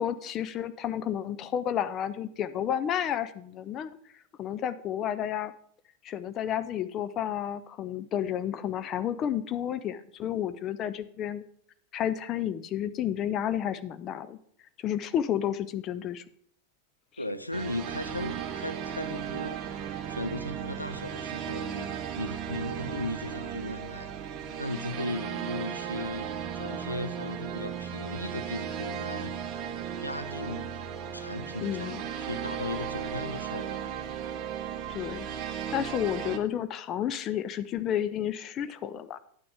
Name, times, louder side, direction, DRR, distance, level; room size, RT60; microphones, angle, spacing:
voice 1, 0.0-3.9 4.4-5.5 6.0-11.4 11.9-14.4 14.8-16.2 31.6-32.0 34.9-35.3 35.7-39.2, left 10 dB, 30° left, 0.5 m, -31 dB
voice 2, 17.2-19.6 20.1-24.1 24.6-29.3 30.0-30.8 31.1-33.8, left 1 dB, 85° left, 0.6 m, -37 dB
sound 1, 17.5-36.4, right 8 dB, 35° right, 1.0 m, -36 dB
10.5 x 9.3 x 3.4 m
figure-of-eight pair, 90°, 0 cm